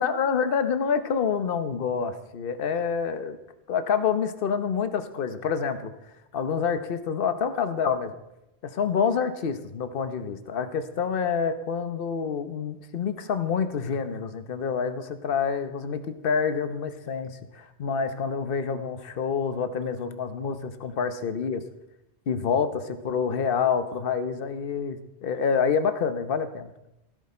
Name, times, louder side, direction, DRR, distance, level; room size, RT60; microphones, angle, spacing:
voice 1, 0.0-3.4 3.7-5.9 6.3-8.1 8.6-21.6 22.3-26.7, left 6 dB, 55° left, 10 dB, 1.1 m, -27 dB
16.5 x 11.5 x 4.3 m, 0.91 s
omnidirectional pair, 1.2 m